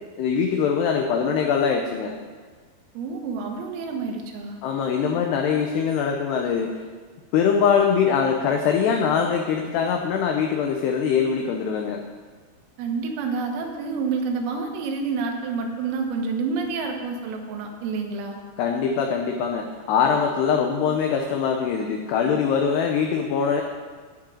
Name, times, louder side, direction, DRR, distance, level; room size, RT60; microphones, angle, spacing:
voice 1, 0.2-2.1 4.6-6.7 7.3-12.0 18.6-23.6, left 6 dB, 85° left, 3 dB, 2.4 m, -22 dB
voice 2, 3.0-4.6 12.8-18.4, right 4 dB, 90° right, 2 dB, 4.0 m, -28 dB
10.5 x 6.5 x 8.7 m, 1.5 s
omnidirectional pair, 5.8 m